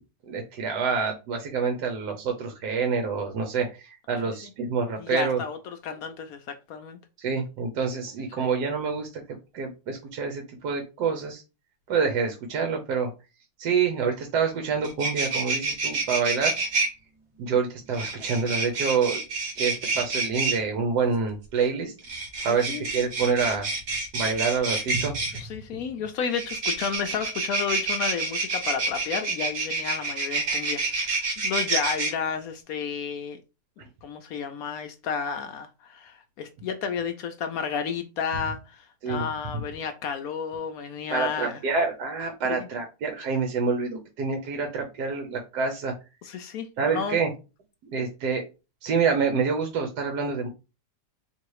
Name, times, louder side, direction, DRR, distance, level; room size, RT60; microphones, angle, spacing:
voice 1, 0.3-5.4 7.2-9.2 9.5-11.4 11.9-13.1 13.6-16.5 17.4-21.9 22.4-23.7 24.1-25.4 39.0-39.3 41.1-45.9 46.8-47.3 47.8-48.4 48.8-50.5, right 5 dB, 65° right, 1.3 m, -27 dB
voice 2, 5.0-7.0 8.3-8.5 22.5-22.8 25.3-33.4 33.8-41.6 42.6-42.7 46.2-46.7 46.9-47.2, left 6 dB, 75° left, 0.8 m, -32 dB
sound 1, 14.5-14.6 14.8-16.9 17.9-20.6 22.0-25.4 26.3-32.1, right 3 dB, 45° right, 1.1 m, -28 dB
3.1 x 2.9 x 4.6 m
omnidirectional pair, 2.0 m